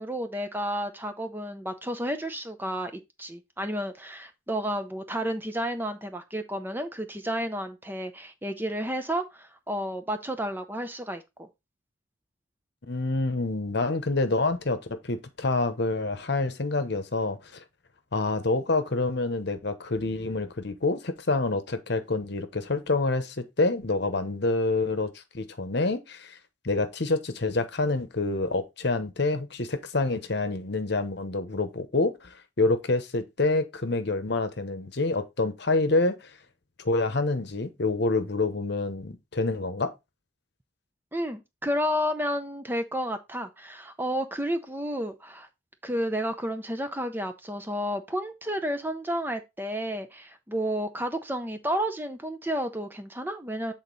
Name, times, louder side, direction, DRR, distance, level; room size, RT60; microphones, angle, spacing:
voice 1, 0.0-11.5 41.1-45.5 45.8-53.7, equal, 10° right, 0.6 m, -31 dB
voice 2, 12.9-17.4 18.1-26.4 26.6-36.3 36.8-39.9, left 2 dB, 55° left, 0.9 m, -27 dB
8.1 x 3.9 x 4.0 m
head